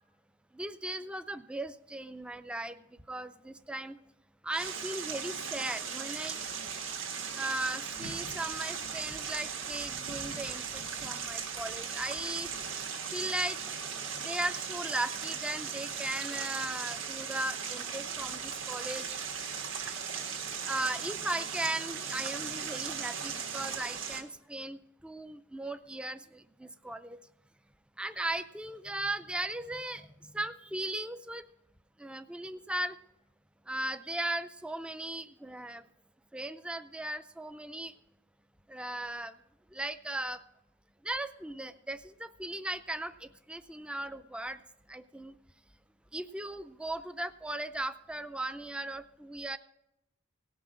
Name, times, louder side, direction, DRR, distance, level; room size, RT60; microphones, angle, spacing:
voice 1, 0.5-2.8 3.1-4.0 4.4-6.4 7.3-12.5 13.1-13.6 14.2-19.1 20.3-27.2 28.0-31.4 32.0-33.0 33.7-35.8 36.3-37.9 38.7-39.3 39.7-40.4 41.0-44.6 44.9-45.3 46.1-49.6, right 1 dB, 5° right, 12 dB, 0.4 m, -37 dB
sound 1, 4.5-24.2, right 6 dB, 60° right, 1.6 m, -38 dB
17.5 x 6.1 x 6.2 m, 0.85 s
head